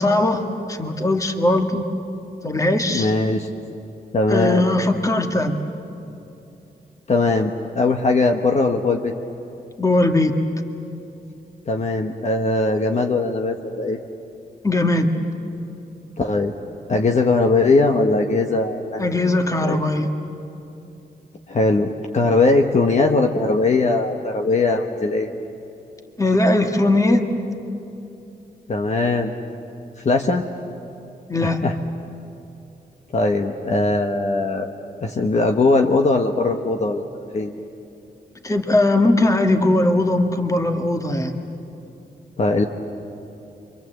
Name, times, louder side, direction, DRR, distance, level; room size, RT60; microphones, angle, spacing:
voice 1, 0.0-1.8 2.4-3.1 4.3-5.6 9.8-10.3 14.6-15.1 19.0-20.1 26.2-27.2 31.3-31.6 38.4-41.4, left 2 dB, 20° left, 5 dB, 1.7 m, -19 dB
voice 2, 2.9-3.5 4.1-4.7 7.1-9.1 11.7-14.0 16.2-16.5 16.9-19.2 19.6-19.8 21.5-25.3 28.7-29.4 30.0-30.4 31.4-31.7 33.1-34.7 35.0-37.0 37.3-37.6 42.4-42.6, left 3 dB, 45° left, 3 dB, 1.2 m, -20 dB
29.0 x 24.5 x 8.0 m, 2.9 s
wide cardioid pair, 140°, 17 cm